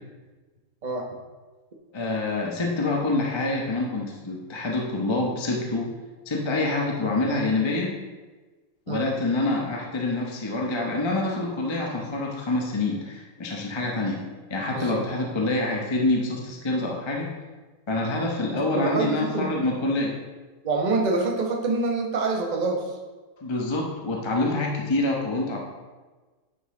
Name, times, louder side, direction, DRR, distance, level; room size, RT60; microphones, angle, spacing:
voice 1, 1.9-5.9 6.3-7.9 8.9-14.2 14.5-17.3 17.9-20.2 23.4-25.6, left 2 dB, 25° left, -1 dB, 0.7 m, -26 dB
voice 2, 14.7-15.0 18.5-19.5 20.6-22.9, right 3 dB, 30° right, 1 dB, 0.8 m, -26 dB
9.9 x 5.5 x 3.8 m, 1.3 s
omnidirectional pair, 2.1 m